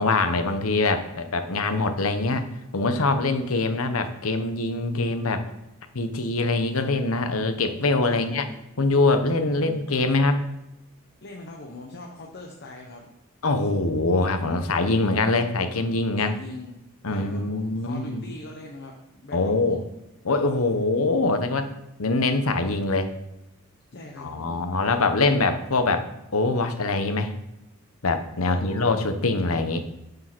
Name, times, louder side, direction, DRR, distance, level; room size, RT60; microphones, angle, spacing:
voice 1, 0.0-2.4 2.7-5.4 5.9-8.4 8.8-10.4 13.4-16.4 17.0-18.2 19.3-19.8 20.2-21.7 22.0-23.1 24.2-26.1 26.3-27.3 28.0-29.8, left 3 dB, 85° left, 8 dB, 1.0 m, -23 dB
voice 2, 8.1-8.6 9.5-9.8 11.2-13.1 16.2-19.8 23.9-24.6 28.4-29.0, left 2 dB, 55° left, 0 dB, 1.1 m, -42 dB
9.4 x 4.9 x 6.1 m, 0.93 s
head